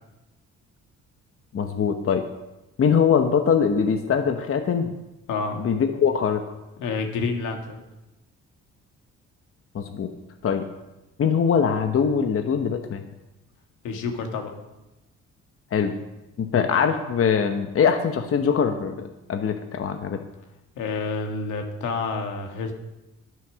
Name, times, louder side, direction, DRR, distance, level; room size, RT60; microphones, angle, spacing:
voice 1, 1.5-2.3 2.8-4.9 5.6-6.4 9.7-10.1 10.4-10.6 11.2-13.0 15.7-15.9 16.4-20.2, left 7 dB, 50° left, 6 dB, 1.0 m, -22 dB
voice 2, 6.8-7.8 13.8-14.5 20.8-22.7, left 4 dB, 85° left, 3 dB, 1.9 m, -28 dB
11.0 x 9.3 x 6.3 m, 0.99 s
cardioid pair, 90°, 30 cm